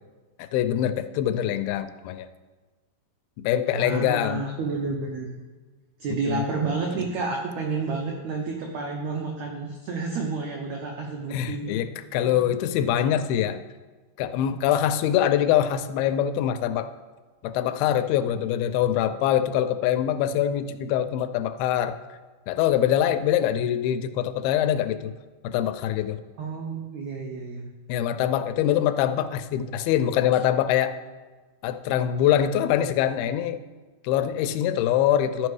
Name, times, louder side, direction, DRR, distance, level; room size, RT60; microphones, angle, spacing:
voice 1, 0.4-2.3 3.4-4.4 6.1-6.4 11.3-13.6 14.2-16.9 17.4-22.0 22.5-25.1 25.4-26.2 27.9-31.0 31.6-33.6 34.0-35.5, left 10 dB, 85° left, 11 dB, 2.4 m, -24 dB
voice 2, 3.7-5.4 6.0-11.8 26.4-27.7, right 4 dB, 75° right, 1 dB, 1.6 m, -30 dB
13.0 x 5.3 x 4.8 m, 1.3 s
omnidirectional pair, 4.3 m